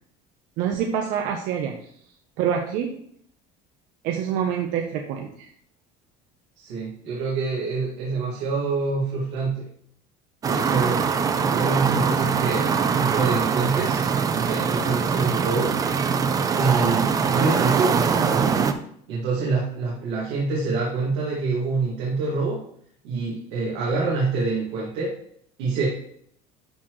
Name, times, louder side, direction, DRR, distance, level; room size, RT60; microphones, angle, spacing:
voice 1, 0.6-1.8 2.4-3.0 4.0-5.5, right 8 dB, 70° right, 3 dB, 0.9 m, -26 dB
voice 2, 6.6-9.7 10.5-11.0 11.4-14.0 14.3-15.8 16.6-18.5 19.1-22.6 23.0-25.1 25.6-25.9, right 4 dB, 90° right, -5 dB, 2.3 m, -26 dB
sound 1, 10.4-18.7, right 6 dB, 25° right, 0.5 m, -23 dB
12.0 x 4.3 x 3.2 m, 0.64 s
cardioid pair, 145°, 14 cm